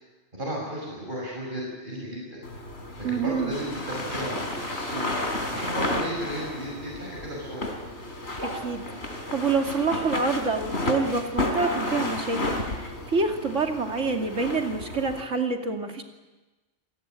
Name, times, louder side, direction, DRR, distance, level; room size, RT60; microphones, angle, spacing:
voice 1, 0.3-2.4 3.0-5.1 5.5-7.6, right 1 dB, 45° right, -2 dB, 5.8 m, -34 dB
sound 1, 2.4-15.2, left 1 dB, 65° left, 3.8 m, -32 dB
voice 2, 3.0-3.5 8.4-16.0, right 4 dB, 85° right, 3 dB, 2.9 m, -27 dB
26.5 x 18.0 x 9.0 m, 1.2 s
omnidirectional pair, 1.2 m